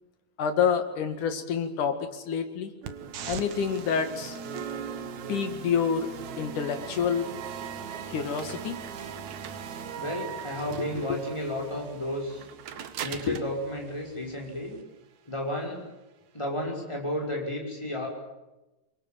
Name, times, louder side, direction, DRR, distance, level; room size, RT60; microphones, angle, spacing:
voice 1, 0.4-2.7 3.3-4.4 5.3-6.1 6.4-7.3 8.1-8.8 11.1-11.2 13.3-13.4, left 7 dB, 70° left, 7 dB, 3.5 m, -28 dB
sound 1, 2.8-14.8, right 7 dB, 65° right, 2.6 m, -39 dB
voice 2, 9.9-12.4 13.0-14.8 15.3-15.8 16.3-18.1, equal, 10° left, 0 dB, 5.9 m, -32 dB
25.5 x 23.0 x 9.2 m, 1.0 s
omnidirectional pair, 3.7 m